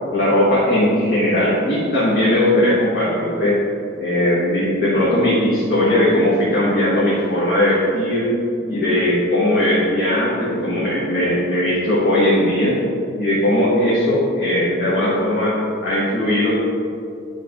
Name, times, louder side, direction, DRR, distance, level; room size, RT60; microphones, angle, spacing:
voice 1, 0.1-3.6 4.0-8.4 8.7-12.8 13.2-16.5, left 1 dB, 50° left, -9 dB, 1.4 m, -18 dB
8.4 x 3.3 x 5.2 m, 2.4 s
head